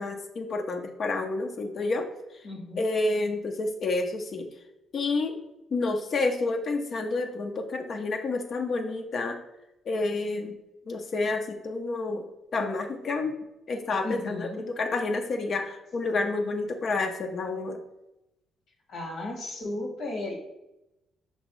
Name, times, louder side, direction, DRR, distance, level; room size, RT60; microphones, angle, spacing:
voice 1, 0.0-2.1 2.3-2.4 2.8-4.5 4.9-5.4 5.7-9.4 9.9-10.6 10.9-12.2 12.5-13.3 13.7-17.8, left 3 dB, 55° left, 4 dB, 0.5 m, -29 dB
voice 2, 2.4-2.8 14.0-14.7 18.9-20.3, left 2 dB, 75° left, 0 dB, 1.4 m, -35 dB
5.3 x 2.9 x 3.0 m, 0.91 s
cardioid pair, 90°, 0 cm